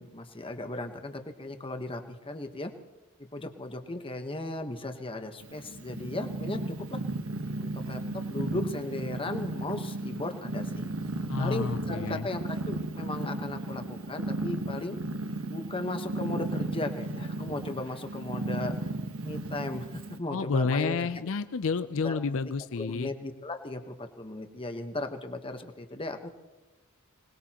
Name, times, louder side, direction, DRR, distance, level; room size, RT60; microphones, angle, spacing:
voice 1, 0.0-2.7 3.3-7.0 7.6-10.8 11.4-15.0 15.5-18.7 19.2-21.1 22.0-22.2 22.8-26.3, left 2 dB, 25° left, 6 dB, 1.1 m, -36 dB
Purr, 5.4-20.2, right 2 dB, 70° right, 1.2 m, -35 dB
voice 2, 11.3-12.3 20.3-23.1, left 4 dB, 65° left, 12 dB, 0.5 m, -30 dB
25.5 x 19.5 x 3.0 m, 1.2 s
head